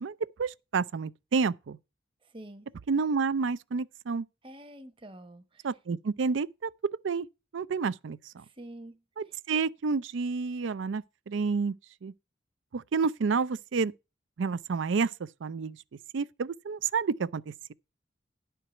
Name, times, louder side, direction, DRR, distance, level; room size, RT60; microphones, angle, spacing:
voice 1, 0.0-1.8 2.9-4.2 5.6-6.7 7.0-7.3 7.5-8.4 9.2-11.7 12.0-12.1 12.7-13.9 14.4-15.1 15.4-15.8 16.1-17.7, right 5 dB, 80° right, 0.4 m, -29 dB
voice 2, 2.3-2.7 4.4-5.7 8.6-9.0, right 1 dB, 25° right, 0.9 m, -46 dB
11.0 x 4.6 x 6.7 m
head